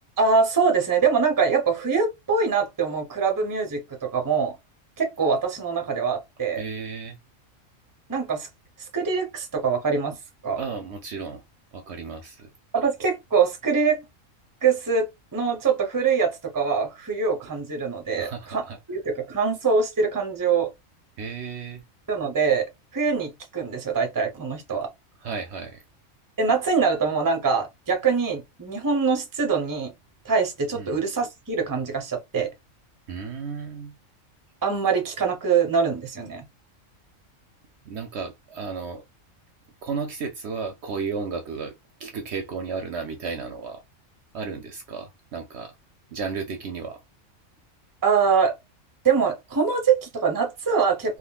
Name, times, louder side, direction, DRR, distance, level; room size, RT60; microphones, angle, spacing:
voice 1, 0.2-4.6 5.0-6.6 8.1-8.5 8.9-10.2 10.4-10.6 12.7-14.0 14.6-20.7 22.1-24.9 26.4-29.9 30.2-32.5 34.6-36.4 48.0-48.6 49.0-51.2, right 5 dB, 20° right, 0.6 m, -24 dB
voice 2, 6.5-7.2 10.6-11.4 11.7-12.5 18.2-18.8 21.2-21.8 25.2-25.8 30.7-31.0 33.1-33.9 37.9-39.0 39.8-41.7 42.0-43.8 44.3-45.7 46.1-47.0, right 5 dB, 65° right, 0.8 m, -33 dB
3.6 x 2.3 x 2.3 m
omnidirectional pair, 1.4 m